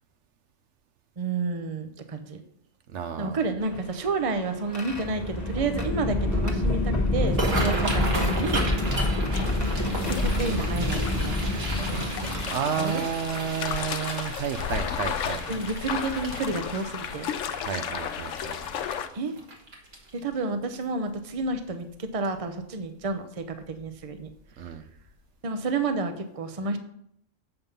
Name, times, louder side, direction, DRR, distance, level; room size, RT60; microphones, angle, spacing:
voice 1, 1.2-2.4 3.2-8.7 10.1-12.1 12.8-13.0 15.5-17.3 19.1-19.4 20.1-24.3 25.4-26.8, right 3 dB, 35° right, 7 dB, 0.8 m, -30 dB
voice 2, 2.9-3.5 7.5-7.7 8.8-9.0 12.5-15.4 17.6-18.6 24.6-24.9, right 7 dB, 70° right, 8 dB, 1.0 m, -31 dB
sound 1, 3.6-12.9 13.8-13.9 15.3-15.6 16.3-16.5 18.1-18.2 18.6-18.9, left 2 dB, 15° left, 1.2 m, -27 dB
sound 2, 7.2-20.3 20.8-21.1 21.4-21.8 22.2-22.4 23.6-23.8 24.2-24.3 24.8-24.9, right 2 dB, 55° right, 1.7 m, -35 dB
sound 3, 9.3-19.1, left 7 dB, 85° left, 1.0 m, -34 dB
8.0 x 5.4 x 5.5 m, 0.71 s
omnidirectional pair, 1.3 m